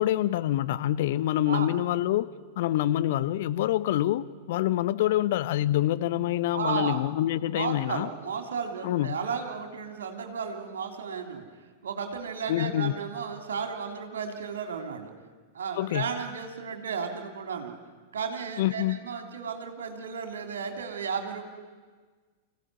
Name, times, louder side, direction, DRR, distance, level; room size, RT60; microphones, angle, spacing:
voice 1, 0.0-2.3 2.6-8.1 8.8-9.2 12.5-12.9 15.8-16.0 18.6-19.0, left 13 dB, 55° left, 13 dB, 0.9 m, -26 dB
voice 2, 6.5-7.0 7.6-11.5 11.8-15.1 15.5-17.7 18.1-21.4, right 6 dB, 65° right, 5 dB, 3.2 m, -34 dB
25.5 x 15.5 x 9.8 m, 1.4 s
figure-of-eight pair, 95°, 0 cm